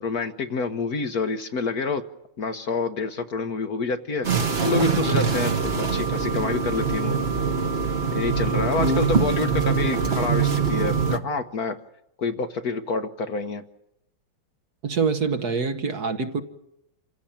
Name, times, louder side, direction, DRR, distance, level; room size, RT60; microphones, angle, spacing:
voice 1, 0.0-2.0 2.4-4.3 4.6-7.2 8.1-11.8 12.2-13.6, left 4 dB, 55° left, 8 dB, 1.4 m, -27 dB
sound 1, 4.2-11.2, right 5 dB, 35° right, 1.3 m, -23 dB
voice 2, 8.8-9.1 14.8-16.4, right 4 dB, 55° right, 7 dB, 1.6 m, -25 dB
27.0 x 16.0 x 8.8 m, 0.84 s
omnidirectional pair, 2.2 m